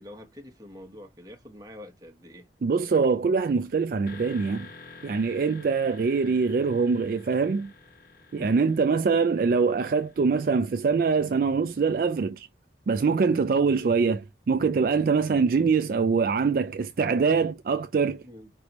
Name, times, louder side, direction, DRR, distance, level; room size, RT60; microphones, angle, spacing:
voice 1, 0.0-2.5 8.4-8.6 18.2-18.5, left 1 dB, 20° right, 1.1 m, -45 dB
voice 2, 2.6-4.7 5.0-7.7 8.3-12.5 12.9-18.2, right 5 dB, 50° right, 0.3 m, -24 dB
sound 1, 4.1-11.8, left 4 dB, 55° left, 1.1 m, -50 dB
5.3 x 3.2 x 3.0 m
head